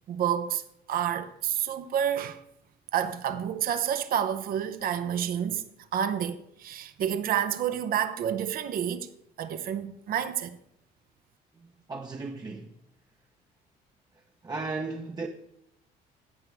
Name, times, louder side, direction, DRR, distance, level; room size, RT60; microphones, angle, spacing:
voice 1, 0.1-0.6 0.9-2.4 2.9-5.6 5.9-9.1 9.4-10.6, right 9 dB, 60° right, 0.8 m, -29 dB
voice 2, 11.6-12.7 14.4-15.3, right 3 dB, 25° right, 0.7 m, -36 dB
16.5 x 5.8 x 3.5 m
cardioid pair, 110°, 17 cm